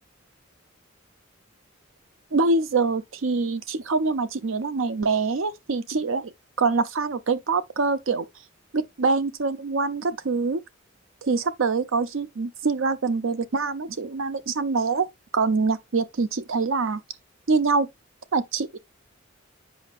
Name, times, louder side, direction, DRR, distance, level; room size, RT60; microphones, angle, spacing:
voice 1, 2.3-6.3 6.6-8.3 8.7-10.6 11.2-15.1 15.3-17.0 17.5-17.9 18.3-18.8, right 4 dB, 75° right, 0.7 m, -24 dB
7.8 x 5.2 x 2.4 m
head